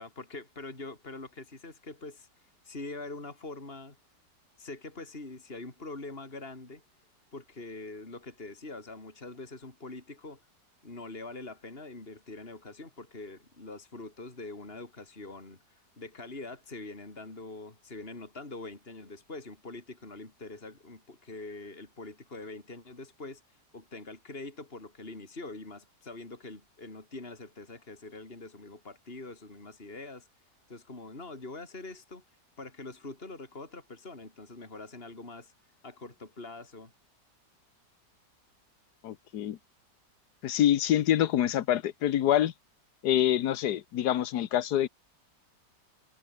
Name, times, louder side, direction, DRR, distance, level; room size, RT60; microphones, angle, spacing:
voice 1, 0.0-2.3 2.6-4.0 4.6-6.8 7.3-10.4 10.8-15.6 16.0-23.4 23.7-30.3 30.7-32.2 32.6-35.5 35.8-36.9, left 2 dB, 30° left, 4.3 m, -44 dB
voice 2, 39.0-39.6 40.4-42.5 43.0-44.9, left 11 dB, 65° left, 1.4 m, -26 dB
omnidirectional pair, 1.9 m